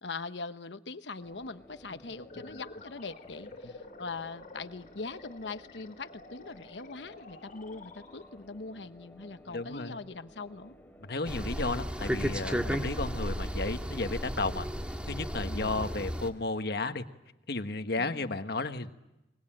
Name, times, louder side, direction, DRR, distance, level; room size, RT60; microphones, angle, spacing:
voice 1, 0.0-10.8 12.6-12.9 15.5-15.9 18.0-18.3, left 3 dB, 80° left, 11 dB, 1.1 m, -42 dB
sound 1, 1.2-16.2, equal, 10° left, 3.2 m, -55 dB
sound 2, 2.1-8.6, left 3 dB, 45° left, 3.6 m, -50 dB
voice 2, 9.5-10.0 11.1-14.7 15.1-17.0 17.5-18.9, left 3 dB, 65° left, 8 dB, 1.4 m, -33 dB
sound 3, 11.3-16.3, equal, 5° right, 1.8 m, -34 dB
25.0 x 22.5 x 9.0 m, 0.93 s
head